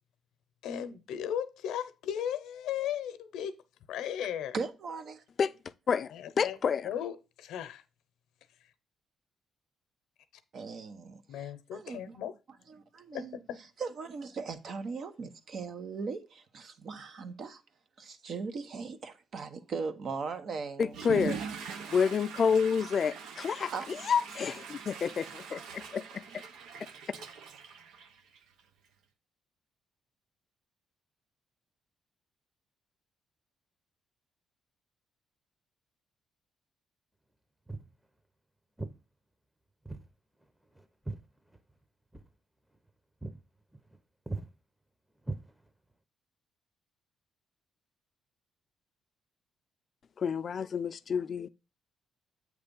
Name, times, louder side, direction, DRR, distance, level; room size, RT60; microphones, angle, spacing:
voice 1, 0.6-3.5 3.9-4.5 6.1-6.6 6.8-7.8 11.3-12.3 13.1-13.6, left 9 dB, 85° left, 0.7 m, -36 dB
voice 2, 4.5-5.2 10.5-12.2 12.7-13.4 13.8-17.6 18.0-21.0 23.7-23.9, right 4 dB, 60° right, 1.0 m, -39 dB
voice 3, 5.9-6.9 20.8-21.4 21.9-26.2 27.2-27.3 50.2-51.5, left 6 dB, 50° left, 0.4 m, -29 dB
Water / Toilet flush, 20.8-28.6, right 6 dB, 85° right, 0.9 m, -42 dB
Walk footsteps, 37.7-38.0 38.8-39.0 39.8-40.1 40.4-41.8 42.1-42.3 42.7-42.9 43.2-43.4 43.7-44.0 44.3-44.5 45.2-45.9, right 2 dB, 10° right, 0.9 m, -40 dB
8.1 x 3.3 x 5.3 m
cardioid pair, 90°, 0 cm